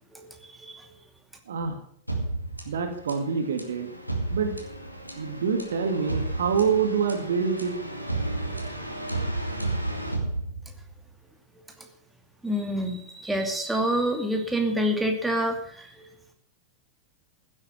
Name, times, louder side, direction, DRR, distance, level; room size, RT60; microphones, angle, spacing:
voice 1, 0.1-0.8 11.8-11.9 12.4-16.1, equal, 5° right, 2 dB, 2.5 m, -27 dB
voice 2, 1.5-1.8 2.7-3.9 4.3-4.5 5.2-7.8, right 6 dB, 65° right, 5 dB, 2.3 m, -26 dB
sound 1, 2.1-11.0, right 2 dB, 90° right, 2.2 m, -32 dB
15.5 x 8.2 x 7.3 m, 0.66 s
figure-of-eight pair, 90°, 0 cm